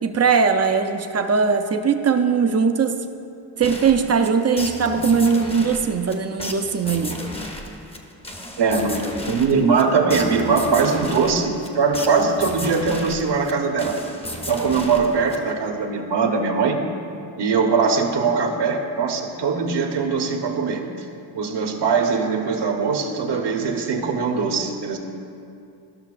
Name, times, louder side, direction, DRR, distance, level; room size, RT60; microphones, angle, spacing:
voice 1, 0.0-3.0 3.6-7.2, right 5 dB, 30° right, 7 dB, 0.5 m, -20 dB
sound 1, 3.6-15.8, left 1 dB, 10° left, 0.8 m, -34 dB
voice 2, 8.6-14.0 14.5-16.8 17.4-20.8 21.3-25.0, right 5 dB, 55° right, 4 dB, 1.1 m, -21 dB
14.0 x 5.9 x 2.5 m, 2.5 s
cardioid pair, 75°, 49 cm